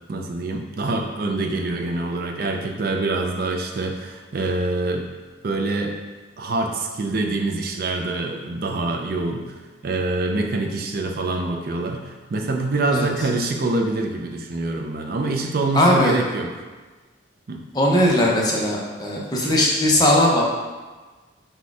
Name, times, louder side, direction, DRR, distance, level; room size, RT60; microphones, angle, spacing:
voice 1, 0.1-5.1 5.4-6.0 6.4-9.5 9.8-16.6 17.5-17.6, right 2 dB, 50° right, 2 dB, 0.4 m, -25 dB
voice 2, 15.8-16.2 17.7-20.5, left 1 dB, 20° left, -3 dB, 0.6 m, -18 dB
4.2 x 2.3 x 4.6 m, 1.3 s
head